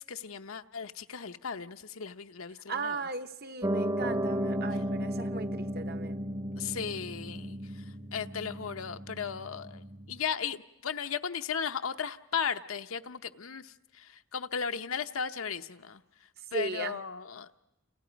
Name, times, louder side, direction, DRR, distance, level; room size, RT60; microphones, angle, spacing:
voice 1, 0.0-3.0 6.6-7.6 8.1-9.8 10.1-16.0 16.5-17.5, left 7 dB, 80° left, 0.9 m, -36 dB
voice 2, 2.7-6.2 16.5-17.0, right 3 dB, 50° right, 0.9 m, -37 dB
Piano, 3.6-10.2, equal, 20° right, 0.8 m, -34 dB
29.5 x 28.5 x 5.2 m
head